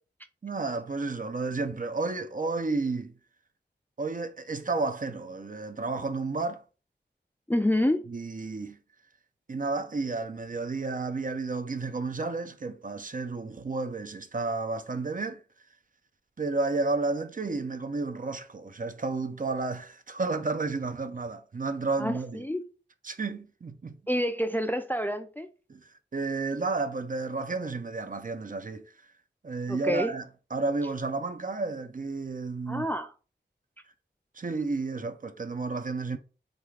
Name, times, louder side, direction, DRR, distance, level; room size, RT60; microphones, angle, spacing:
voice 1, 0.4-3.1 4.0-6.6 8.1-8.8 9.5-15.4 16.4-22.5 23.0-24.0 25.7-28.9 29.4-32.9 34.3-36.2, right 3 dB, 45° right, 0.5 m, -32 dB
voice 2, 7.5-8.0 22.0-22.6 24.1-25.5 29.7-30.1 32.7-33.1, equal, 10° left, 0.3 m, -28 dB
3.5 x 2.4 x 3.2 m
wide cardioid pair, 45°, 19 cm